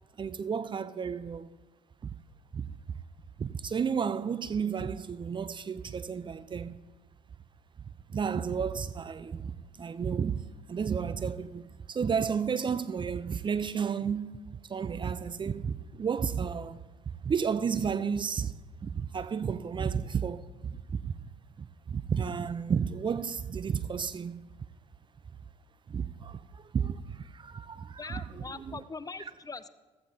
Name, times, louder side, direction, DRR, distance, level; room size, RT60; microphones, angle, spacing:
voice 1, 0.2-1.5 2.0-2.1 2.5-3.0 3.4-6.7 8.1-10.4 10.7-14.3 14.7-16.8 17.1-18.5 18.8-21.2 21.6-24.4 25.9-28.8, right 6 dB, 30° right, 0.6 m, -32 dB
voice 2, 28.0-29.7, left 4 dB, 25° left, 0.6 m, -41 dB
15.0 x 14.0 x 2.8 m
hypercardioid pair, 50°, 15 cm